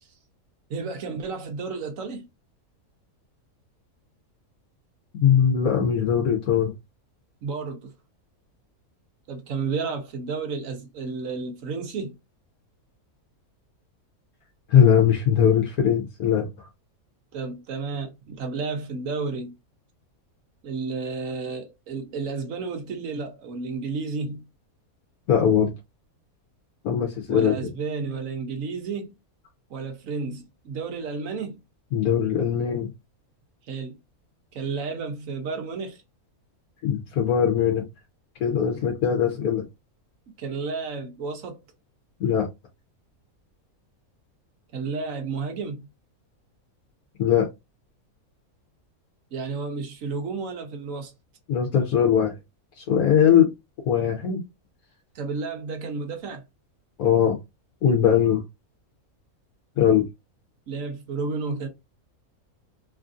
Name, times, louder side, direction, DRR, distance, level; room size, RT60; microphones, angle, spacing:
voice 1, 0.7-2.3 7.4-7.9 9.3-12.1 17.3-19.5 20.6-24.4 27.3-29.1 29.7-31.6 33.7-34.0 34.5-36.0 40.4-41.6 44.7-45.9 49.3-51.1 55.1-56.4 60.7-61.7, right 4 dB, 70° right, 1.1 m, -32 dB
voice 2, 5.2-6.7 14.7-16.5 25.3-25.7 26.8-27.5 31.9-32.9 36.8-37.8 38.4-39.6 42.2-42.5 47.2-47.5 51.5-52.3 52.9-53.5 53.9-54.4 57.0-57.4 57.8-58.4 59.8-60.0, left 8 dB, 80° left, 1.2 m, -20 dB
3.2 x 2.4 x 2.5 m
omnidirectional pair, 1.5 m